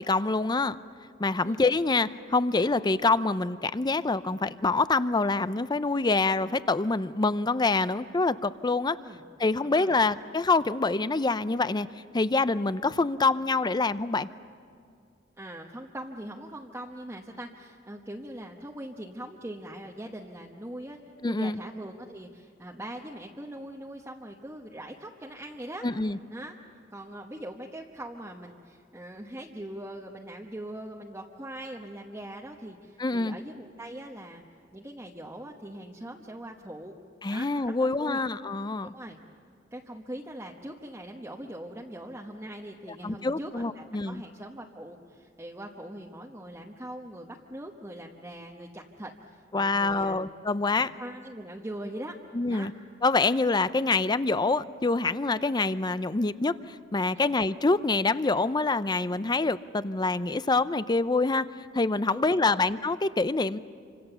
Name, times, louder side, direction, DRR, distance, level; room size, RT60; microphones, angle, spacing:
voice 1, 0.1-0.8 1.2-9.0 9.4-11.9 12.1-14.3 21.2-21.6 25.8-26.2 33.0-33.3 37.2-38.9 43.0-44.2 49.5-50.9 52.3-52.7 53.0-61.5 61.7-63.6, left 3 dB, 20° left, 15 dB, 0.5 m, -26 dB
voice 2, 9.6-10.0 15.4-25.9 26.3-26.6 26.9-34.4 34.7-36.9 37.3-37.5 37.8-38.2 38.9-39.2 39.7-50.2 51.0-52.2 52.5-52.7 62.1-62.7, right 1 dB, 15° right, 0 dB, 1.1 m, -41 dB
27.5 x 26.0 x 6.9 m, 2.3 s
head